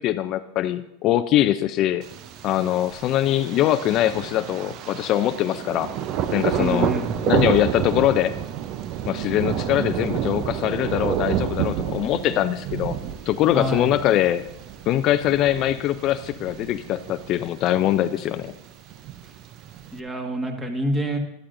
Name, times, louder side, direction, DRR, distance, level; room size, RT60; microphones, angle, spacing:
voice 1, 0.0-2.0 2.4-5.9 6.3-6.9 7.2-8.3 9.1-13.0 13.3-14.4 14.9-18.5, left 12 dB, 45° left, 11 dB, 0.4 m, -22 dB
Thunder, 2.0-20.0, right 10 dB, 50° right, 0.6 m, -30 dB
voice 2, 6.6-7.2 13.5-13.9 19.9-21.2, right 1 dB, 20° right, 3 dB, 1.8 m, -26 dB
13.0 x 11.5 x 2.6 m, 0.88 s
hypercardioid pair, 110°, 0 cm